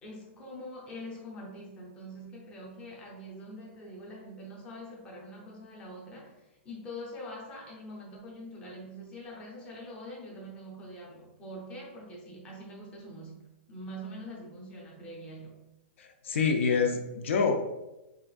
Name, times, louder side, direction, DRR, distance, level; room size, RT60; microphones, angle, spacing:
voice 1, 0.0-15.6, equal, 15° left, -2 dB, 0.7 m, -44 dB
voice 2, 16.0-17.8, left 5 dB, 70° left, 5 dB, 0.5 m, -27 dB
5.9 x 2.5 x 2.4 m, 0.98 s
hypercardioid pair, 170°, 7 cm